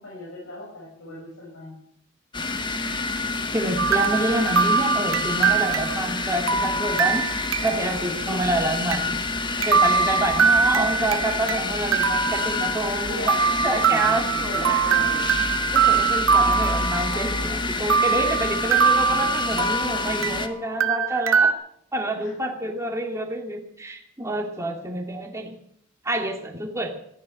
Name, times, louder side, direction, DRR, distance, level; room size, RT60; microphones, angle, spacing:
voice 1, 0.0-1.8 8.2-8.4 9.6-9.7 10.1-10.2 10.7-10.8 13.1-15.3 22.1-22.7, left 1 dB, 85° left, -5 dB, 6.5 m, -38 dB
sound 1, 2.3-20.5, left 3 dB, 25° left, 1.2 m, -28 dB
voice 2, 3.5-7.3 7.6-9.2 9.6-13.3 13.6-15.0 15.7-21.5 21.9-25.6 26.0-26.9, right 1 dB, 15° right, 2 dB, 2.3 m, -28 dB
sound 2, 3.8-8.0 8.3-8.4 8.9-9.0 9.6-11.6 11.9-13.0 13.3-17.5 17.9-20.5 20.8-21.5, right 6 dB, 80° right, 1.0 m, -23 dB
15.0 x 10.5 x 8.9 m, 0.71 s
head